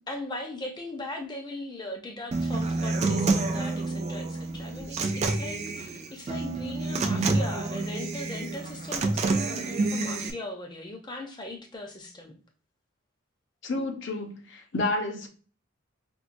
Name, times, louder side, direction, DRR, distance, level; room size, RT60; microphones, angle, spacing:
voice 1, 0.0-12.4, left 2 dB, 20° left, 0.6 m, -39 dB
Human voice / Acoustic guitar, 2.3-10.3, right 3 dB, 30° right, 0.3 m, -28 dB
voice 2, 13.6-15.3, left 2 dB, 55° left, 0.7 m, -30 dB
4.5 x 2.2 x 2.5 m
head